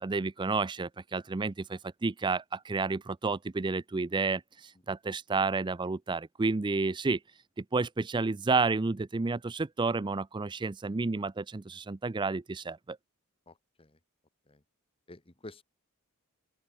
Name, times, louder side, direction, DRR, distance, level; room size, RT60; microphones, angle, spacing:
voice 1, 0.0-7.2 7.7-13.0, right 3 dB, 20° right, 0.4 m, -31 dB
voice 2, 13.5-14.0 14.5-14.6 15.1-15.6, left 2 dB, 25° left, 1.5 m, -50 dB
open air
head